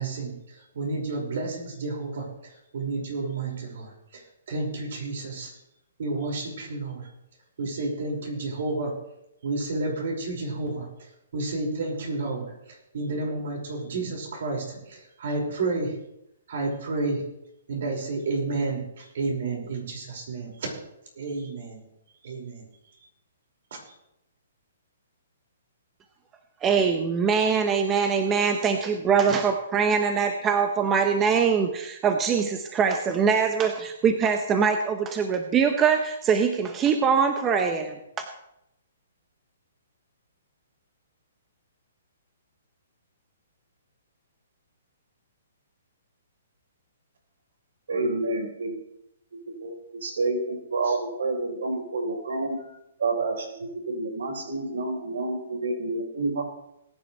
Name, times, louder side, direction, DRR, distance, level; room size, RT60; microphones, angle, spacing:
voice 1, 0.0-5.5 6.0-7.0 7.6-8.9 9.4-10.9 11.3-15.9 16.5-17.2 17.7-20.5 21.2-21.8 22.2-22.6 23.9-24.0, right 3 dB, 65° right, 0 dB, 5.6 m, -31 dB
voice 2, 26.6-38.0, right 6 dB, 15° right, 6 dB, 0.9 m, -23 dB
voice 3, 47.9-48.8 49.3-52.6 53.0-56.4, right 2 dB, 80° right, 3 dB, 4.1 m, -29 dB
19.5 x 10.5 x 3.3 m, 0.83 s
hypercardioid pair, 155°, 0 cm